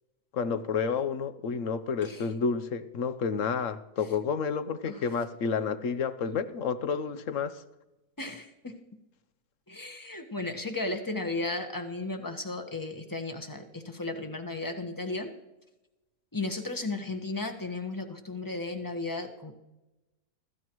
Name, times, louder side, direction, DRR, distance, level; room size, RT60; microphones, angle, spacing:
voice 1, 0.3-7.6, left 5 dB, 55° left, 13 dB, 1.1 m, -30 dB
voice 2, 8.2-8.7 9.7-15.3 16.3-19.5, left 2 dB, 15° left, 5 dB, 1.2 m, -35 dB
25.5 x 14.5 x 3.1 m, 1.0 s
omnidirectional pair, 1.7 m